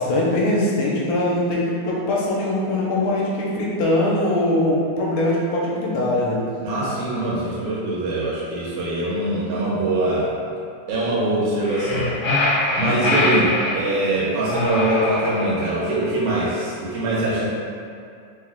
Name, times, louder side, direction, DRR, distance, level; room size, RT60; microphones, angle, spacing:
voice 1, 0.0-6.4 12.9-13.3, left 1 dB, 75° left, -5 dB, 1.9 m, -22 dB
voice 2, 6.6-10.3 10.9-12.1 12.8-17.5, right 1 dB, 80° right, -7 dB, 2.3 m, -23 dB
sound 1, 11.6-13.8 14.4-15.7, left 2 dB, 60° left, 1.4 m, -23 dB
4.9 x 2.3 x 3.6 m, 2.4 s
omnidirectional pair, 3.5 m